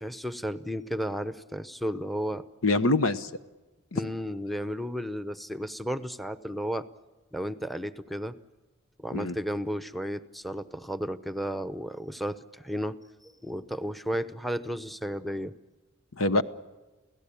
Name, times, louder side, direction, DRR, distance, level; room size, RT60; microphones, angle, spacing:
voice 1, 0.0-2.4 3.9-6.9 7.3-8.4 9.0-13.0 13.2-15.5, equal, ahead, 12 dB, 0.7 m, -33 dB
voice 2, 2.6-3.3 3.9-4.1 9.1-9.4 16.2-16.4, left 2 dB, 80° left, 12 dB, 1.1 m, -24 dB
29.0 x 17.5 x 8.6 m, 1.2 s
head